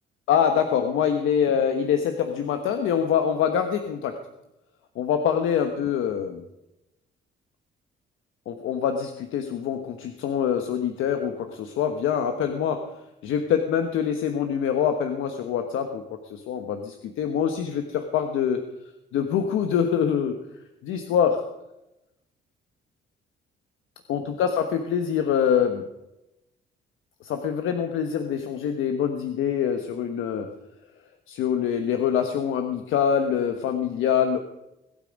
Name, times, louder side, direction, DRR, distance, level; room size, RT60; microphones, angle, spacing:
voice 1, 0.3-4.2 4.9-6.4 8.5-12.9 13.2-18.7 19.1-20.4 20.8-21.5 24.1-25.9 27.2-30.5 31.3-34.4, left 8 dB, 85° left, 6 dB, 1.2 m, -25 dB
22.0 x 8.9 x 5.3 m, 0.93 s
cardioid pair, 90°, 20 cm